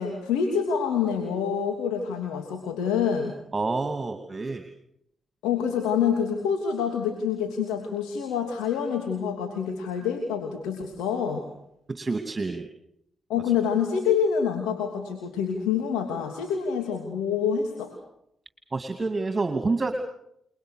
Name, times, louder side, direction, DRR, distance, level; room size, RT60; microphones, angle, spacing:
voice 1, 0.0-3.3 5.4-11.4 13.3-17.9, left 7 dB, 80° left, 3 dB, 3.1 m, -27 dB
voice 2, 3.5-4.7 11.9-12.7 18.7-19.9, right 3 dB, 35° right, 7 dB, 2.7 m, -28 dB
29.5 x 21.5 x 6.6 m, 0.74 s
hypercardioid pair, 45°, 0 cm